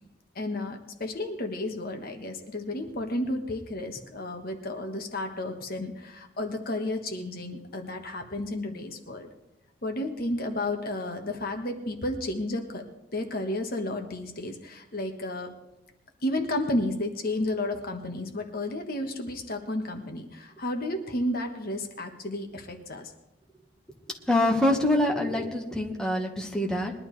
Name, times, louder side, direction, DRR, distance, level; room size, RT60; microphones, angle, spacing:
voice 1, 0.3-9.3 9.8-12.8 13.1-15.5 16.2-23.1, left 1 dB, 50° left, 4 dB, 1.3 m, -32 dB
voice 2, 24.3-26.9, left 1 dB, 5° left, -1 dB, 1.4 m, -25 dB
21.0 x 11.5 x 3.3 m, 0.92 s
head